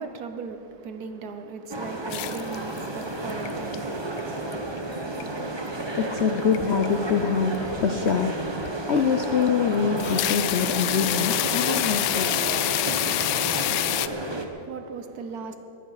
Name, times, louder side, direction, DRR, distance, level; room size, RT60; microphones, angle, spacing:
voice 1, 0.0-4.4 14.0-15.6, right 5 dB, 65° right, 1.4 m, -38 dB
sound 1, 1.7-14.4, right 2 dB, 20° right, 0.8 m, -32 dB
sound 2, 2.1-3.0 3.3-3.8 4.2-4.8 5.2-5.3 6.1-6.6 6.8-7.0 7.6-7.7 8.1-8.2 8.7-8.8 9.2-9.5 9.8-14.1, left 14 dB, 80° left, 1.2 m, -26 dB
voice 2, 6.0-12.3, left 6 dB, 65° left, 0.6 m, -25 dB
22.0 x 9.5 x 5.7 m
omnidirectional pair, 1.9 m